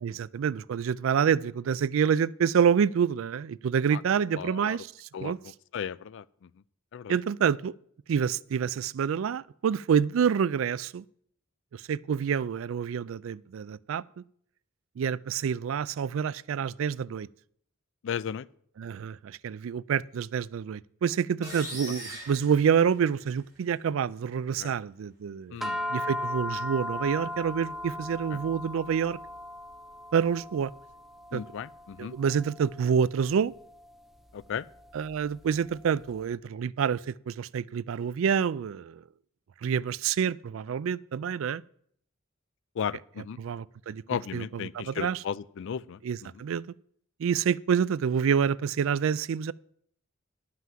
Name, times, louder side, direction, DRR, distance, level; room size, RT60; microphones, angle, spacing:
voice 1, 0.0-5.4 7.1-7.7 8.1-11.0 11.7-14.2 15.0-17.3 18.8-25.6 25.9-29.2 30.1-30.7 31.3-31.4 32.0-33.5 34.9-39.0 39.6-41.6 43.4-44.0 44.3-45.2 46.0-46.7 47.2-49.5, right 7 dB, 70° right, 0.3 m, -27 dB
voice 2, 4.3-4.8 5.1-5.3 5.7-6.2 6.9-7.1 18.0-18.4 24.6-24.7 25.5-25.8 31.3-32.1 34.3-34.6 42.8-43.4 44.1-46.0, left 7 dB, 65° left, 0.4 m, -35 dB
sound 1, 21.4-23.4, right 1 dB, 15° right, 4.8 m, -41 dB
sound 2, 25.6-36.1, left 1 dB, ahead, 0.7 m, -38 dB
11.0 x 5.8 x 7.4 m
head